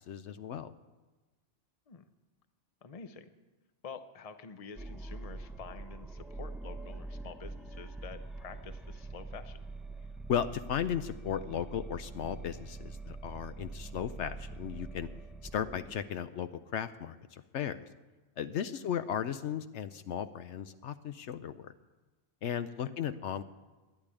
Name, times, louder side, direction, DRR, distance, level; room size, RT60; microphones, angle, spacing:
voice 1, 0.1-0.7 10.3-15.1 15.5-17.9 18.4-21.7 22.4-23.4, left 9 dB, 70° left, 12 dB, 0.9 m, -36 dB
voice 2, 2.8-3.3 3.8-9.7 18.7-18.9 22.8-22.9, left 5 dB, 35° left, 10 dB, 0.8 m, -48 dB
sound 1, 4.8-15.9, right 2 dB, ahead, 0.4 m, -44 dB
12.0 x 10.5 x 9.8 m, 1.2 s
omnidirectional pair, 1.3 m